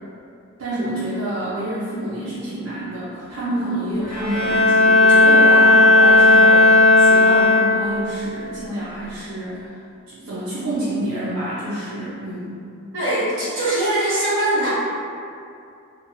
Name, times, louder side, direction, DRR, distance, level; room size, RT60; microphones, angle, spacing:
voice 1, 0.6-9.8 10.1-12.6, right 1 dB, 85° right, -11 dB, 0.6 m, -28 dB
Bowed string instrument, 4.0-8.1, left 2 dB, 40° left, 0.4 m, -13 dB
voice 2, 5.2-5.6 12.9-14.7, right 1 dB, 60° right, -11 dB, 1.1 m, -22 dB
2.8 x 2.2 x 2.7 m, 2.5 s
head